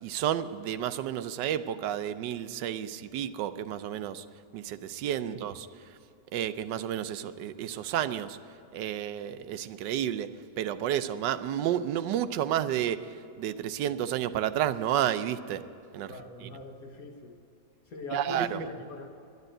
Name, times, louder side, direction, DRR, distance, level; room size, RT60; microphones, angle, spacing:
voice 1, 0.0-4.3 4.5-5.7 6.3-8.4 8.7-10.3 10.6-15.6 15.9-16.6 18.1-18.7, right 10 dB, 85° right, 12 dB, 1.3 m, -31 dB
voice 2, 16.1-17.4 17.9-19.1, left 3 dB, 60° left, 4 dB, 1.6 m, -42 dB
11.0 x 10.5 x 8.9 m, 2.7 s
omnidirectional pair, 1.8 m